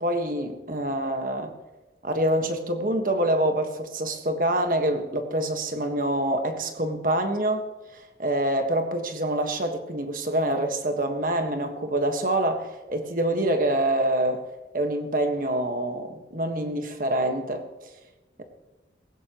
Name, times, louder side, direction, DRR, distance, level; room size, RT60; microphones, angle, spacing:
voice 1, 0.0-1.5 2.0-7.6 7.9-14.4 14.7-17.6, right 1 dB, 50° right, 5 dB, 1.6 m, -26 dB
17.5 x 16.0 x 3.1 m, 1.1 s
head